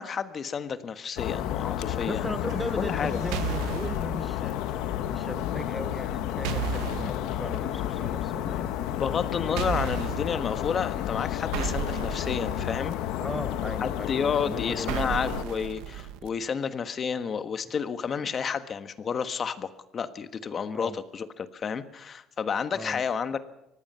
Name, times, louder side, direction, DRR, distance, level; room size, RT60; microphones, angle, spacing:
voice 1, 0.0-2.3 2.8-3.2 8.9-12.9 13.8-23.4, left 6 dB, 35° left, 10 dB, 1.4 m, -31 dB
sound 1, 1.2-15.4, left 12 dB, 80° left, 1.3 m, -31 dB
voice 2, 2.1-8.9 13.2-15.2 20.7-21.0 22.7-23.0, equal, ahead, 11 dB, 0.7 m, -37 dB
sound 2, 2.5-9.5, right 9 dB, 60° right, 3.4 m, -50 dB
sound 3, 3.3-4.0 6.4-7.2 9.6-10.3 11.5-12.9 14.9-16.3, right 11 dB, 85° right, 1.2 m, -33 dB
24.0 x 19.0 x 5.7 m, 0.87 s
cardioid pair, 120°, 0 cm